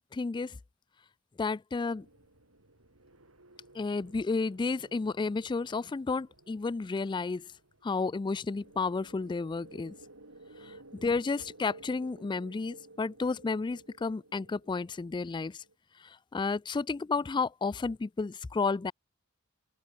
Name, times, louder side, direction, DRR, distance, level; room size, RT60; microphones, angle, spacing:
voice 1, 0.1-0.6 1.4-2.1 3.7-7.5 7.8-9.9 10.6-15.6 16.0-18.9, left 4 dB, 20° left, 0.3 m, -32 dB
sound 1, 1.9-15.7, right 2 dB, 75° right, 6.4 m, -56 dB
open air
head